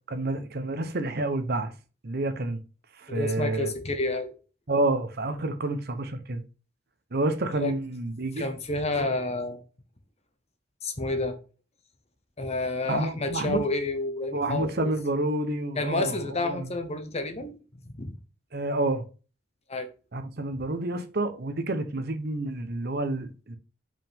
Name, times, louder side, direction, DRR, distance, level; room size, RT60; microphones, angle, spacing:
voice 1, 0.1-1.7 2.0-2.6 3.0-3.7 4.7-6.4 7.1-8.5 9.0-9.1 12.9-13.6 14.3-16.7 18.5-19.0 20.1-23.6, right 2 dB, 50° right, 0.9 m, -29 dB
voice 2, 3.1-4.3 7.5-7.8 8.4-9.6 10.8-11.4 12.4-14.9 15.7-17.6 17.9-18.1 19.7-19.9, left 2 dB, 35° left, 1.0 m, -30 dB
5.4 x 5.3 x 3.6 m
head